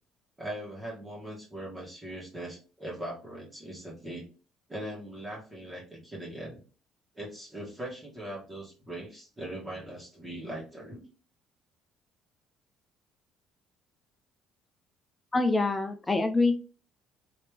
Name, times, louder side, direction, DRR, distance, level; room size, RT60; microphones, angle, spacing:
voice 1, 0.4-4.2 4.7-6.6 7.1-11.0, right 1 dB, 15° right, -4 dB, 1.6 m, -40 dB
voice 2, 15.3-16.6, left 3 dB, 15° left, 7 dB, 0.5 m, -25 dB
3.2 x 2.9 x 3.3 m, 0.37 s
supercardioid pair, 75°, 0 cm